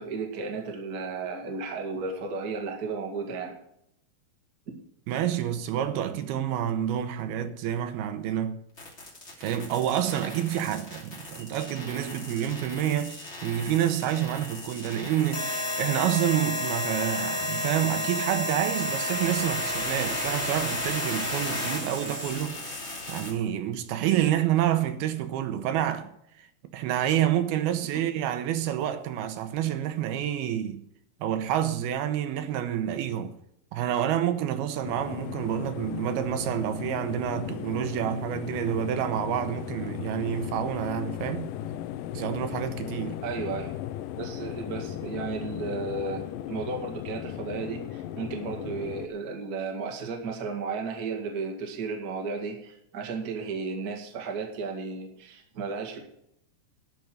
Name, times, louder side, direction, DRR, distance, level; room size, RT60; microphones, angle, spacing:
voice 1, 0.0-3.6 43.2-43.8 44.1-56.0, right 4 dB, 35° right, 1.6 m, -34 dB
voice 2, 5.1-8.6 9.4-22.8 23.1-26.1 26.4-30.8 31.2-33.3 33.7-41.5 42.1-43.2, right 11 dB, 80° right, 2.8 m, -28 dB
sound 1, 8.8-23.3, left 1 dB, 20° left, 2.7 m, -33 dB
sound 2, 34.8-49.1, left 12 dB, 80° left, 2.1 m, -36 dB
12.0 x 6.1 x 8.0 m
omnidirectional pair, 4.5 m